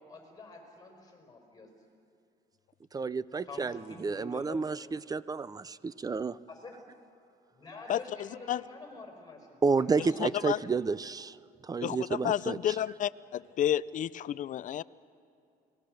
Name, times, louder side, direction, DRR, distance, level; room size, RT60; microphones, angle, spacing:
voice 1, 0.0-1.7 3.5-4.8 6.5-6.8 7.5-10.3 10.6-10.8, left 3 dB, 25° left, 2 dB, 5.0 m, -47 dB
voice 2, 2.9-6.4 9.6-11.4 11.6-12.8, right 4 dB, 20° right, 18 dB, 0.5 m, -31 dB
voice 3, 7.9-8.6 10.2-10.6 11.8-14.8, left 11 dB, 50° left, 17 dB, 0.5 m, -31 dB
28.0 x 20.0 x 6.5 m, 2.5 s
cardioid pair, 110°, 17 cm